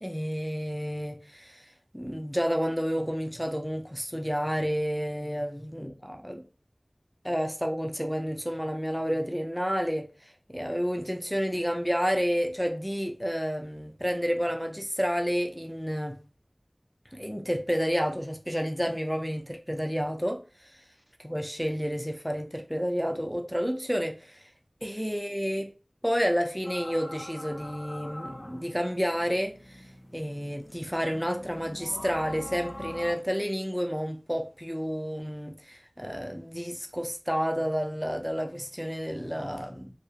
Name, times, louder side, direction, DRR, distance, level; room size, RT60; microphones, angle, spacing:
voice 1, 0.0-1.7 1.9-6.4 7.2-16.2 17.1-20.8 21.2-24.4 24.8-25.7 26.0-29.8 30.1-40.0, equal, ahead, 0.4 m, -30 dB
sound 1, 26.6-33.1, left 1 dB, 45° left, 0.6 m, -43 dB
2.7 x 2.1 x 2.3 m
wide cardioid pair, 45°, 0 cm